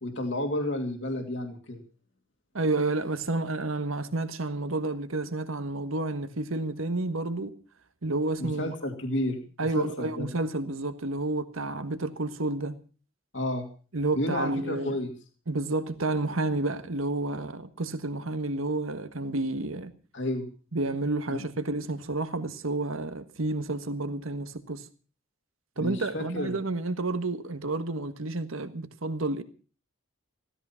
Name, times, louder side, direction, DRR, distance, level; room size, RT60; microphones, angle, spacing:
voice 1, 0.0-1.8 8.4-9.4 9.7-10.3 13.3-13.6 14.1-15.1 20.1-20.5 21.3-21.4 25.8-26.6, left 1 dB, 60° left, 2.5 m, -31 dB
voice 2, 2.5-7.5 8.0-8.7 9.6-12.8 13.9-15.0 15.5-19.9 20.7-24.8 25.8-29.4, right 2 dB, 85° right, 1.5 m, -30 dB
16.0 x 14.0 x 5.8 m
head